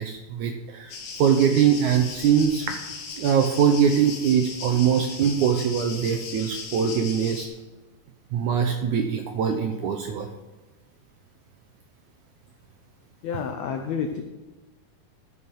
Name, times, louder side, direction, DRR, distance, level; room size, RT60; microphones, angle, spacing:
voice 1, 0.0-2.7 3.2-7.5 8.3-10.3, right 8 dB, 80° right, 5 dB, 1.8 m, -22 dB
sound 1, 0.9-7.5, left 4 dB, 65° left, 3.1 m, -37 dB
voice 2, 13.2-14.2, left 6 dB, 90° left, 5 dB, 1.5 m, -29 dB
14.0 x 5.6 x 6.2 m, 1.2 s
omnidirectional pair, 4.2 m